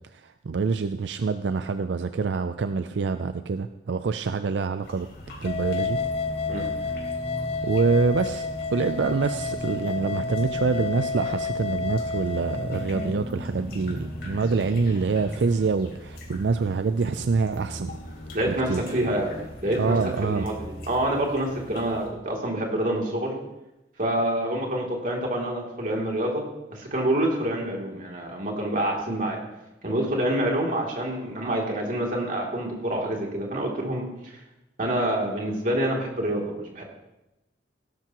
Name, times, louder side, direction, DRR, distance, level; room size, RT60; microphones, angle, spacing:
voice 1, 0.1-5.1 5.4-6.0 7.6-17.9 18.5-18.8 19.8-20.5, right 4 dB, 85° right, 10 dB, 0.5 m, -26 dB
sound 1, 4.8-22.1, left 1 dB, 60° left, 3.5 m, -41 dB
sound 2, 5.4-13.1, left 4 dB, 35° left, 0.4 m, -31 dB
sound 3, 5.9-15.7, equal, 10° right, 0.7 m, -38 dB
voice 2, 18.3-19.3 19.6-23.4 24.0-26.4 26.7-29.4 29.8-34.3 34.8-36.8, right 1 dB, 50° right, -1 dB, 2.9 m, -27 dB
17.0 x 12.0 x 3.0 m, 0.94 s
head